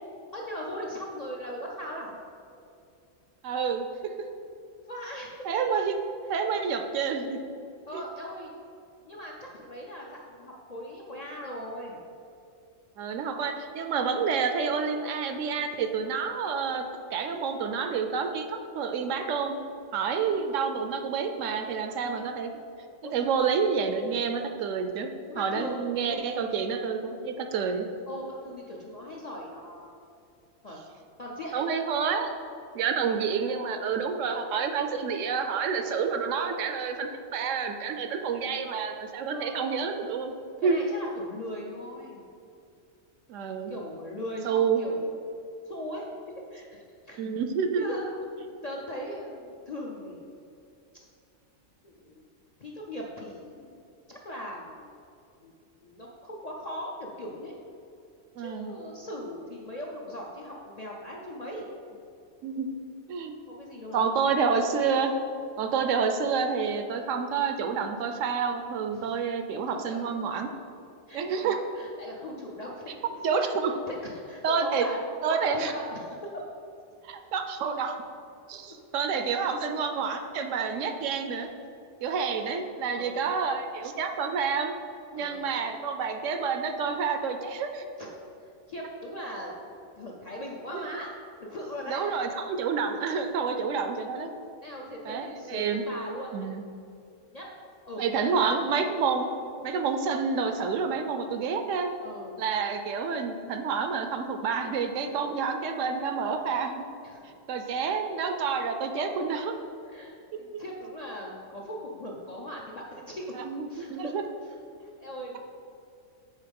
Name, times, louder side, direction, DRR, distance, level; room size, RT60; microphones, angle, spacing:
voice 1, 0.3-2.2 4.8-5.6 6.2-6.3 7.9-8.5 9.0-12.0 20.2-20.5 21.9-22.3 23.0-23.2 25.3-25.8 26.1-26.6 28.1-30.0 30.6-30.8 31.2-31.6 39.3-39.6 40.6-42.2 43.7-45.1 45.7-46.1 46.5-47.2 47.8-48.1 48.4-50.4 51.8-52.3 52.6-55.0 55.4-55.5 55.8-57.5 58.4-61.7 63.5-64.4 68.9-69.1 69.5-70.0 71.1-73.0 73.3-73.5 73.9-75.0 75.4-76.4 78.6-78.8 79.3-79.4 83.0-83.3 85.2-85.5 88.0-88.1 88.7-91.1 91.4-92.0 94.6-96.5 97.3-97.5 97.9-98.7 102.0-102.4 107.0-107.4 109.8-110.1 110.4-113.3 113.7-114.1 114.4-115.4, equal, 50° left, -3 dB, 0.5 m, -39 dB
voice 2, 3.4-4.1 5.4-5.9 6.3-7.4 7.9-8.0 13.0-16.8 17.1-19.6 19.9-22.5 23.1-27.9 31.5-32.3 32.7-40.3 40.6-40.8 43.3-43.7 44.4-44.8 47.2-47.9 58.4-58.7 62.4-62.7 63.1-63.4 63.9-65.2 65.6-70.5 71.1-71.6 73.2-73.7 74.4-74.9 75.2-75.7 77.0-77.9 78.5-81.5 82.0-84.7 85.1-87.9 90.7-90.9 91.9-94.3 95.1-95.8 96.3-96.6 98.0-99.3 99.6-101.9 102.4-106.8 107.5-109.6 110.3-110.6 113.4-114.2, right 5 dB, 75° right, 6 dB, 0.9 m, -29 dB
5.5 x 3.9 x 5.2 m, 2.5 s
omnidirectional pair, 1.3 m